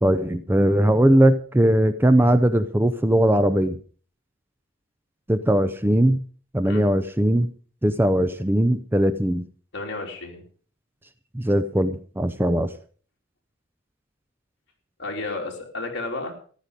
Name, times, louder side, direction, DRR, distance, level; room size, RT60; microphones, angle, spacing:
voice 1, 0.0-3.8 5.3-6.2 6.5-7.5 7.8-9.5 11.3-12.7, right 1 dB, 10° right, 11 dB, 0.6 m, -19 dB
voice 2, 9.7-10.4 15.0-16.3, left 2 dB, 60° left, 0 dB, 3.5 m, -32 dB
14.5 x 10.5 x 5.1 m, 0.44 s
head